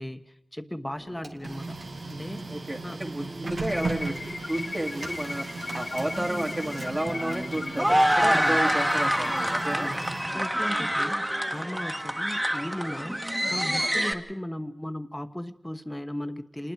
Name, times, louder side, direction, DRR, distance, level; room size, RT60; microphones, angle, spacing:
voice 1, 0.0-1.8 2.1-2.4 2.8-3.0 8.2-8.6 9.7-10.0 10.3-13.2 13.5-16.7, left 1 dB, 15° left, 10 dB, 1.2 m, -36 dB
Printer, 1.0-10.7, right 3 dB, 80° right, 2.2 m, -37 dB
voice 2, 2.5-4.1 4.5-5.5 5.7-9.9, right 1 dB, 35° right, -1 dB, 2.4 m, -31 dB
sound 1, 3.7-9.5, left 3 dB, 65° left, 1.8 m, -37 dB
sound 2, 6.2-14.1, equal, 15° right, 1.6 m, -27 dB
27.5 x 20.5 x 4.8 m, 0.73 s
cardioid pair, 40°, 0 cm